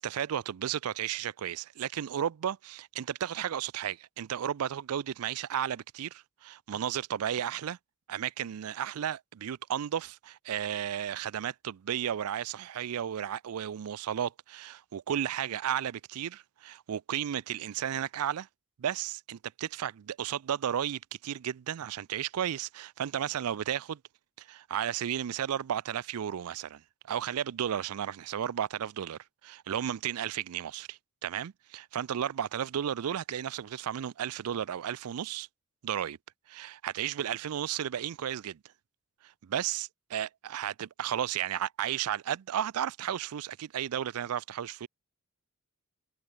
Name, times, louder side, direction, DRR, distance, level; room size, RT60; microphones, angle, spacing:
voice 1, 0.0-7.8 8.1-18.5 18.8-19.9 20.2-24.0 24.4-26.8 27.1-35.5 35.8-36.2 36.5-38.6 39.2-44.9, right 9 dB, 80° right, 0.4 m, -33 dB
head